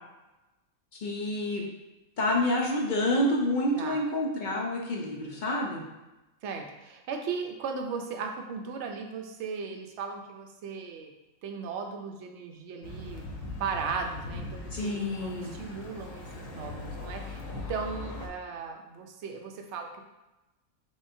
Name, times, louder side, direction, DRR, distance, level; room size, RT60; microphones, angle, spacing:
voice 1, 1.0-1.6 2.2-5.8 14.7-15.5, left 1 dB, 55° left, -1 dB, 0.5 m, -28 dB
voice 2, 6.4-11.1 11.4-13.2 13.6-20.0, right 5 dB, 65° right, 3 dB, 0.8 m, -37 dB
sound 1, 12.8-18.3, left 2 dB, 75° left, 1.1 m, -40 dB
3.8 x 3.6 x 2.6 m, 1.0 s
omnidirectional pair, 1.4 m